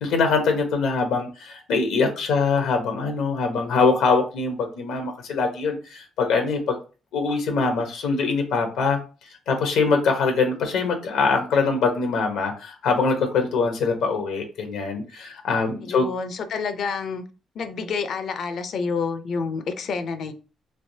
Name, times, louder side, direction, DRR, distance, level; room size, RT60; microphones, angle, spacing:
voice 1, 0.0-6.8 7.1-9.0 9.5-16.1, left 4 dB, 85° left, 0.9 m, -23 dB
voice 2, 15.8-17.2 17.5-20.3, left 5 dB, 65° left, 0.5 m, -28 dB
3.4 x 2.9 x 2.7 m
cardioid pair, 90°, 0 cm